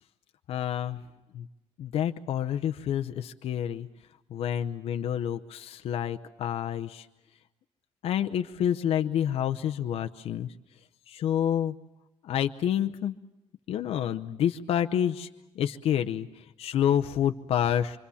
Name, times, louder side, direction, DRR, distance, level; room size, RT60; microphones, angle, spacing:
voice 1, 0.5-1.0 1.3-1.5 1.8-3.9 4.3-7.1 8.0-10.5 11.1-11.7 12.2-13.1 13.7-15.3 15.5-18.0, left 10 dB, 60° left, 6 dB, 0.8 m, -28 dB
26.0 x 24.5 x 7.1 m, 0.99 s
cardioid pair, 145°, 11 cm